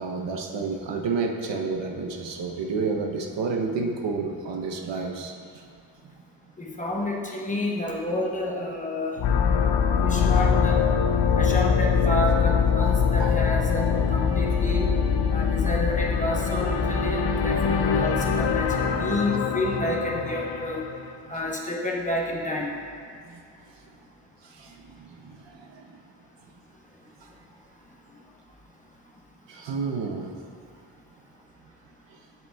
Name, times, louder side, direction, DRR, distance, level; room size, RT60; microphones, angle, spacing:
voice 1, 0.0-5.7 6.0-6.1 13.2-13.4 21.3-21.4 23.2-23.4 24.4-26.0 27.2-27.3 29.5-30.3 32.1-32.2, right 4 dB, 75° right, 1 dB, 0.8 m, -31 dB
voice 2, 6.6-9.2 10.0-10.8 11.4-14.9 15.3-20.8 21.3-22.7, left 1 dB, 15° left, -2 dB, 0.9 m, -29 dB
sound 1, 9.2-21.1, left 6 dB, 65° left, 0.6 m, -23 dB
7.7 x 7.6 x 2.3 m, 2.3 s
cardioid pair, 85°, 44 cm